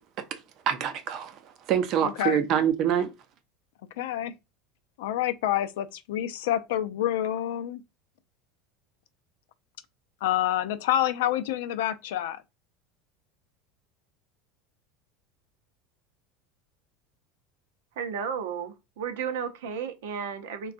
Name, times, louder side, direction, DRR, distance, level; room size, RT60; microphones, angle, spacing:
voice 1, 0.7-1.4 1.7-3.1, right 9 dB, 45° right, 0.5 m, -25 dB
voice 2, 2.0-2.4 4.0-4.3 5.0-7.8 10.2-12.4, left 12 dB, 85° left, 0.4 m, -28 dB
voice 3, 18.0-20.7, right 7 dB, 90° right, 0.6 m, -33 dB
3.8 x 2.2 x 2.5 m
supercardioid pair, 150°, 0 cm